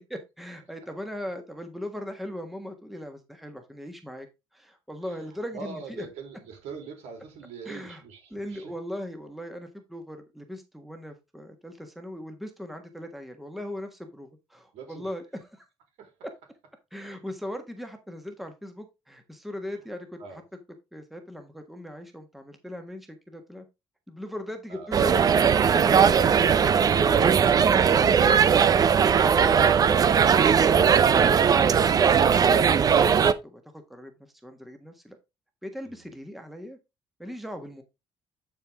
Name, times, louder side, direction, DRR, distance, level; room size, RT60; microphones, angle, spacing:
voice 1, 0.1-4.3 4.5-6.1 7.6-8.0 8.3-15.6 16.2-16.3 16.9-20.4 20.9-23.6 24.1-28.9 29.8-33.6 33.9-34.1 34.4-35.2 35.6-36.8 37.2-37.8, equal, ahead, 1.4 m, -39 dB
voice 2, 5.5-8.7 14.7-15.1 16.0-16.1 20.2-20.4 24.7-25.0 35.8-36.1, right 5 dB, 85° right, 3.4 m, -43 dB
sound 1, 24.9-33.3, right 7 dB, 35° right, 0.6 m, -19 dB
10.5 x 4.6 x 3.6 m
cardioid pair, 130°, 11 cm